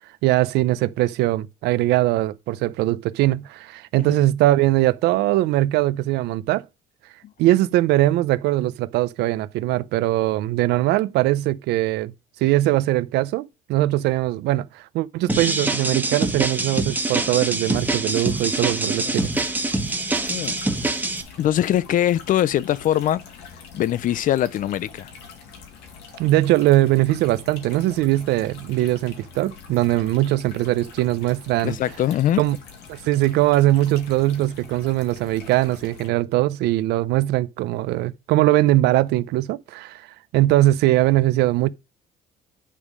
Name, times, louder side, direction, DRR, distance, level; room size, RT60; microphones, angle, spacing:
voice 1, 0.2-6.6 7.4-12.1 12.4-19.3 26.2-31.8 32.4-32.6 32.9-40.0 40.3-41.7, right 16 dB, 85° right, 0.6 m, -21 dB
sound 1, 15.3-21.2, right 2 dB, 10° right, 1.3 m, -24 dB
sound 2, 16.4-36.1, left 5 dB, 85° left, 2.1 m, -45 dB
voice 2, 20.3-20.6 21.4-23.3 23.7-25.1 31.6-32.4, left 12 dB, 55° left, 0.5 m, -22 dB
10.0 x 3.6 x 4.8 m
cardioid pair, 110°, 17 cm